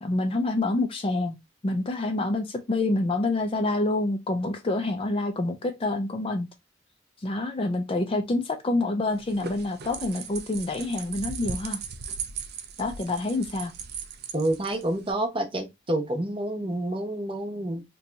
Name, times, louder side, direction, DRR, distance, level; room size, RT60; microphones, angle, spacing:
voice 1, 0.0-1.4 1.6-6.5 7.2-11.8 12.8-13.7, left 2 dB, 30° left, 0.4 m, -27 dB
sound 1, 9.1-15.1, right 6 dB, 55° right, 0.4 m, -38 dB
voice 2, 14.3-17.8, right 1 dB, 30° right, 0.8 m, -28 dB
2.7 x 2.3 x 3.8 m
head